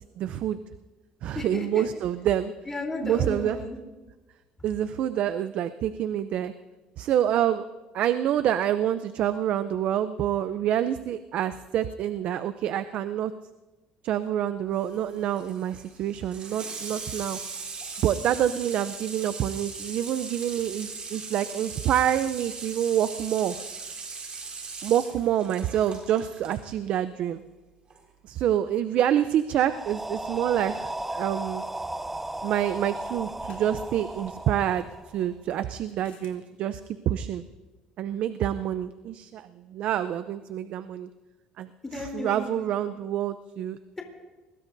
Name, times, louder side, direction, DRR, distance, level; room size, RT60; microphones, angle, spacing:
voice 1, 0.2-0.6 1.2-2.5 3.0-3.6 4.6-6.5 7.0-7.7 7.9-13.3 14.0-17.4 18.0-23.6 24.8-27.4 28.2-31.6 32.4-34.9 35.1-36.8 37.1-37.4 38.0-41.1 41.6-43.8, right 10 dB, 60° right, 12 dB, 0.6 m, -27 dB
voice 2, 1.3-1.9 2.7-3.8 41.8-42.7, left 2 dB, 20° left, 1 dB, 3.5 m, -34 dB
Water tap faucet / Sink (filling or washing), 14.7-26.6 27.9-28.0, right 4 dB, 40° right, 3.8 m, -39 dB
sound 1, 29.6-35.5, right 1 dB, 10° right, 0.7 m, -35 dB
sound 2, 33.5-33.8 36.0-36.4, left 7 dB, 70° left, 3.2 m, -52 dB
25.5 x 21.0 x 2.7 m, 1.2 s
cardioid pair, 100°, 2 cm